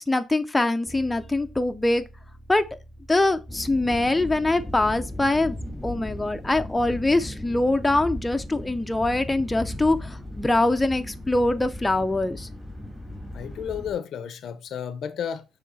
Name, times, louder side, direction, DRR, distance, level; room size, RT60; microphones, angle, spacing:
voice 1, 0.0-2.0 2.5-2.7 3.1-5.6 5.8-12.5, left 2 dB, 15° left, 0.5 m, -23 dB
Bass guitar, 0.9-7.1, right 1 dB, 35° right, 3.0 m, -48 dB
sound 1, 3.5-13.9, left 1 dB, 10° right, 2.6 m, -37 dB
voice 2, 13.3-15.4, left 8 dB, 70° left, 0.5 m, -32 dB
6.5 x 3.1 x 2.6 m
cardioid pair, 90°, 0 cm